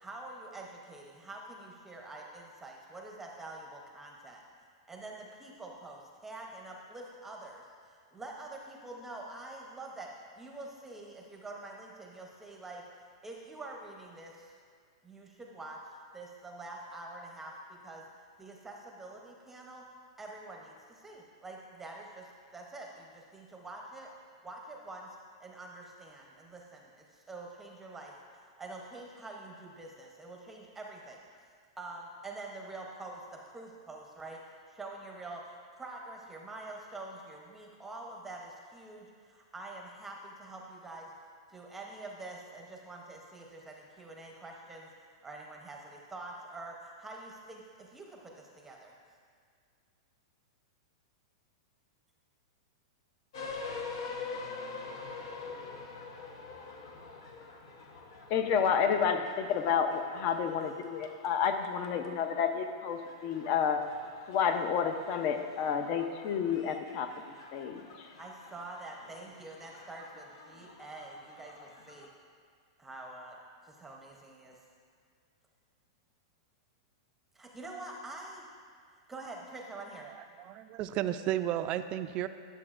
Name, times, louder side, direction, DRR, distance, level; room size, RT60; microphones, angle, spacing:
voice 1, 0.0-4.4 4.9-7.6 8.1-10.1 10.4-12.8 13.2-14.3 15.0-15.8 16.1-17.5 17.8-18.0 18.4-19.8 20.2-20.7 21.0-22.2 22.5-23.1 23.3-24.1 24.4-25.1 25.4-26.8 27.3-28.1 28.6-31.2 31.8-33.2 33.5-34.4 34.8-35.4 35.8-39.1 39.5-41.1 41.5-44.9 45.2-47.6 47.9-48.2 48.6-48.9 68.2-72.1 72.8-73.4 73.8-74.5 77.4-78.5 79.1-80.1, right 2 dB, 10° right, 0 dB, 0.7 m, -46 dB
sound 1, 53.3-72.1, left 4 dB, 70° left, 0.8 m, -46 dB
voice 2, 58.3-63.8 64.3-67.1 67.5-68.1, left 7 dB, 45° left, 7 dB, 0.6 m, -30 dB
voice 3, 80.0-82.3, right 12 dB, 35° right, 11 dB, 0.3 m, -33 dB
10.5 x 6.8 x 2.5 m, 2.1 s
hypercardioid pair, 135°, 3 cm